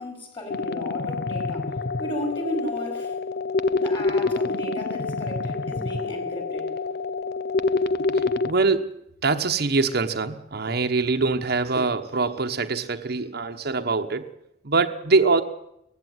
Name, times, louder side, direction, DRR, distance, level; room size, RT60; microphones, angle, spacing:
voice 1, 0.0-3.2 3.8-6.7, equal, 30° left, 5.3 m, -34 dB
sound 1, 0.5-8.5, left 3 dB, 55° left, 0.8 m, -27 dB
voice 2, 8.4-8.9 9.2-14.3 14.6-15.4, right 3 dB, 60° right, 1.1 m, -23 dB
18.0 x 15.5 x 9.4 m
head